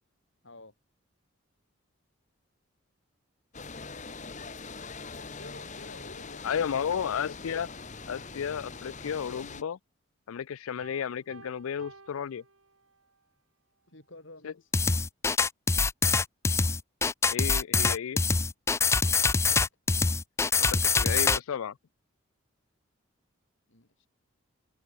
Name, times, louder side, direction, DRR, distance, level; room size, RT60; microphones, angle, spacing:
sound 1, 3.5-9.6, left 4 dB, 35° left, 1.5 m, -42 dB
voice 1, 5.1-6.9 13.9-14.6 19.0-19.6 23.7-24.1, left 2 dB, 65° left, 4.6 m, -50 dB
voice 2, 6.4-7.7 8.1-9.8 10.3-12.4 14.4-14.5 17.3-18.2 20.6-21.8, left 7 dB, 85° left, 0.4 m, -33 dB
Piano, 10.8-13.2, right 3 dB, 80° right, 2.8 m, -53 dB
sound 2, 14.7-21.4, left 4 dB, 15° left, 0.4 m, -24 dB
head